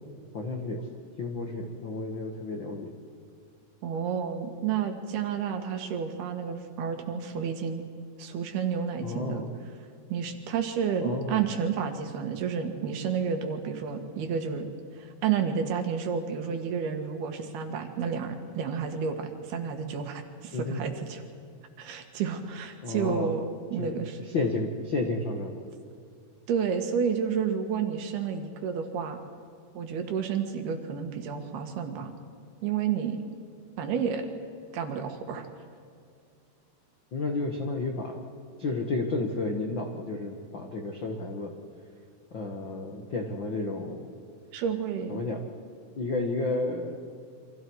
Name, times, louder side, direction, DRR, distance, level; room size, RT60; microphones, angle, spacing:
voice 1, 0.3-0.9 1.2-2.9 9.0-9.5 11.0-11.4 20.5-20.8 22.8-23.3 23.8-23.9 24.2-25.6 37.1-38.2 38.6-41.5 42.3-44.1 45.1-45.5 45.9-47.0, left 2 dB, 70° left, 2 dB, 1.1 m, -31 dB
voice 2, 3.8-7.9 8.2-9.4 10.1-14.7 15.0-21.2 21.8-23.5 23.7-24.2 26.5-29.2 29.8-32.1 32.6-33.2 33.8-34.3 34.7-35.5 44.5-45.2, right 7 dB, 70° right, 5 dB, 3.5 m, -30 dB
28.5 x 25.0 x 4.8 m, 2.4 s
omnidirectional pair, 4.9 m